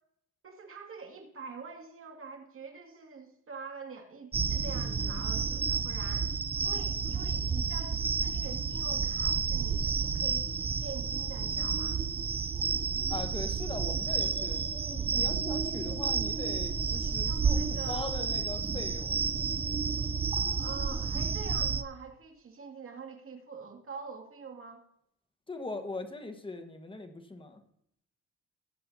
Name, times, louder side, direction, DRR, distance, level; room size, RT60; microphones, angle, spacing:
voice 1, 0.4-6.3 6.6-12.0 17.3-18.1 20.6-24.8, right 5 dB, 45° right, 2 dB, 2.3 m, -45 dB
sound 1, 4.3-21.8, right 5 dB, 20° right, 0.4 m, -31 dB
voice 2, 13.1-19.2 25.5-27.6, left 2 dB, 15° left, 6 dB, 1.3 m, -41 dB
19.0 x 7.7 x 2.7 m, 0.75 s
cardioid pair, 90°, 30 cm